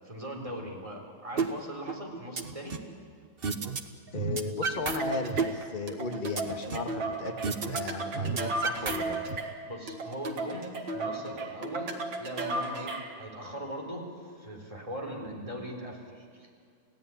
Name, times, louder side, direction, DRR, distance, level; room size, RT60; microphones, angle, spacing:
voice 1, 0.0-2.8 9.7-16.5, equal, 15° right, 1 dB, 4.1 m, -40 dB
sound 1, 1.4-1.5 1.9-2.9 3.4-3.8 4.1-5.0 5.3-6.9 7.4-7.8 8.1-9.4, right 5 dB, 35° right, 1.2 m, -31 dB
voice 2, 4.1-9.2, left 3 dB, 25° left, 4 dB, 1.9 m, -36 dB
sound 2, 4.9-13.2, right 2 dB, 70° right, 2.7 m, -35 dB
29.5 x 16.5 x 9.7 m, 2.3 s
omnidirectional pair, 2.2 m